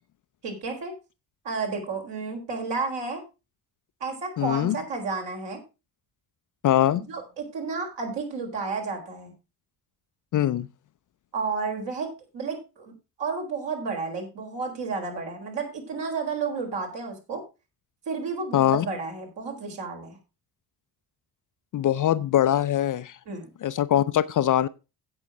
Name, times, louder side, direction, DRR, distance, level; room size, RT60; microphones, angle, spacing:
voice 1, 0.4-0.9 1.4-3.2 4.0-5.6 6.9-9.3 11.3-12.9 13.2-17.4 18.1-20.2 23.3-23.5, right 4 dB, 55° right, 4.4 m, -32 dB
voice 2, 4.4-4.7 6.6-7.0 10.3-10.7 18.5-18.9 21.7-23.2 23.6-24.7, left 11 dB, 40° left, 0.6 m, -22 dB
16.5 x 6.3 x 3.6 m
figure-of-eight pair, 40°, 49 cm